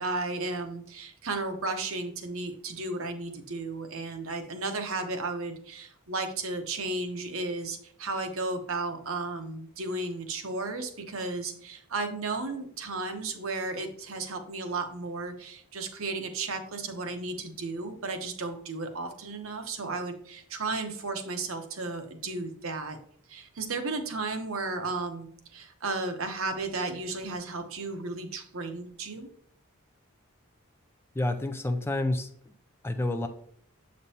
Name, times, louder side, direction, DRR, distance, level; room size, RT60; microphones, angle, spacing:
voice 1, 0.0-23.0 23.3-29.3, right 3 dB, 70° right, 6 dB, 0.9 m, -34 dB
voice 2, 31.2-32.3 32.8-33.3, left 2 dB, 10° left, 7 dB, 0.3 m, -28 dB
7.9 x 5.2 x 2.8 m, 0.62 s
head